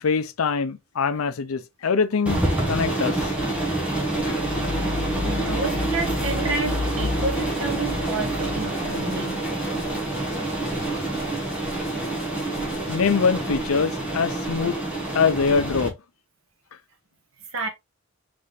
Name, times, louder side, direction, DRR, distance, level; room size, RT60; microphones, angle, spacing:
voice 1, 0.0-3.4 4.2-4.4 12.9-14.8 15.1-15.9, left 5 dB, 80° left, 0.5 m, -23 dB
sound 1, 2.3-15.9, right 1 dB, 5° right, 1.1 m, -27 dB
voice 2, 4.9-9.4 9.9-10.0 10.8-11.3 17.5-17.7, right 3 dB, 75° right, 1.2 m, -31 dB
sound 2, 5.6-13.2, left 1 dB, 25° left, 1.2 m, -43 dB
4.0 x 3.3 x 3.2 m
head